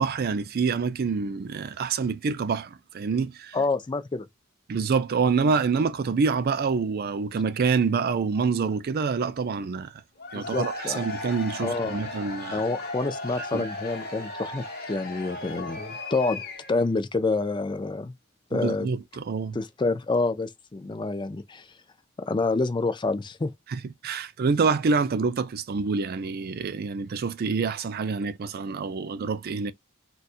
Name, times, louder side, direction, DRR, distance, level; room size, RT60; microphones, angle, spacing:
voice 1, 0.0-3.6 4.7-10.0 10.3-12.6 13.4-13.6 18.5-19.6 23.7-29.7, right 5 dB, 45° right, 0.4 m, -26 dB
voice 2, 3.5-4.3 10.3-11.0 11.6-12.0 12.5-16.4 16.7-18.1 18.5-18.9 19.5-21.7 22.2-23.5, left 3 dB, 20° left, 0.4 m, -28 dB
Cheering / Crowd, 10.2-16.9, left 2 dB, 45° left, 1.1 m, -36 dB
4.0 x 2.3 x 2.4 m
head